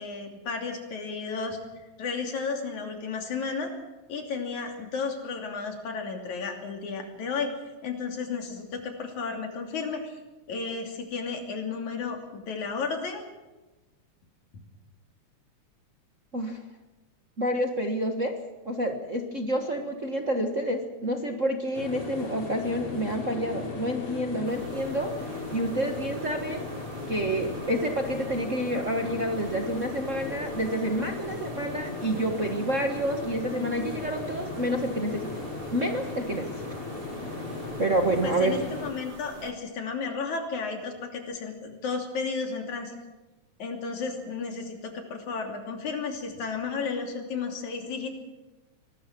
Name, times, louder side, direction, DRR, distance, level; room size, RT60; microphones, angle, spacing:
voice 1, 0.0-1.6 2.0-3.7 4.1-7.5 7.8-10.2 10.5-13.2 38.2-42.9 43.6-48.1, left 5 dB, 80° left, 3 dB, 4.3 m, -33 dB
voice 2, 17.4-18.4 18.6-25.2 25.5-26.7 27.1-35.3 35.7-36.6 37.8-38.6, right 1 dB, 35° right, 3 dB, 1.4 m, -28 dB
sound 1, 21.7-38.9, left 3 dB, 50° left, 4.9 m, -37 dB
sound 2, 24.5-39.5, right 4 dB, 55° right, 3.0 m, -45 dB
24.0 x 19.5 x 6.1 m, 1.1 s
omnidirectional pair, 3.3 m